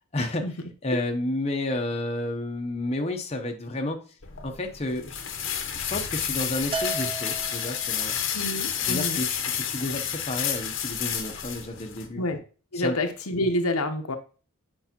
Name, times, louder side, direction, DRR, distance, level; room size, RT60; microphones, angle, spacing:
voice 1, 0.1-0.4 0.8-4.0 4.4-8.2 8.8-12.2 12.7-12.9, left 1 dB, 30° left, 3 dB, 0.8 m, -31 dB
sound 1, 4.2-12.1, left 8 dB, 60° left, 0.9 m, -30 dB
Bell, 6.7-8.1, right 4 dB, 25° right, 0.6 m, -34 dB
voice 2, 8.3-9.2 12.2-12.4 12.7-14.2, left 1 dB, 85° left, 5 dB, 0.9 m, -28 dB
8.1 x 4.7 x 2.9 m, 0.36 s
head